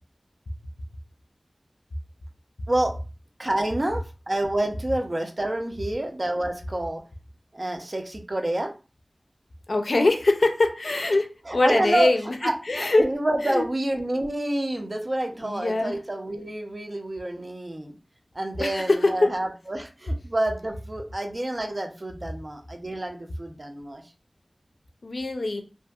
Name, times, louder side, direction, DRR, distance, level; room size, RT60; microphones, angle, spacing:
voice 1, 3.4-7.0 7.5-8.7 11.5-12.1 12.4-18.0 18.3-24.0, right 1 dB, 40° right, 3 dB, 0.5 m, -28 dB
voice 2, 9.7-12.3 12.7-13.0 13.4-13.7 15.4-15.9 18.6-19.3 25.0-25.6, left 2 dB, 80° left, 5 dB, 0.4 m, -23 dB
2.7 x 2.6 x 2.3 m, 0.33 s
wide cardioid pair, 65°, 0 cm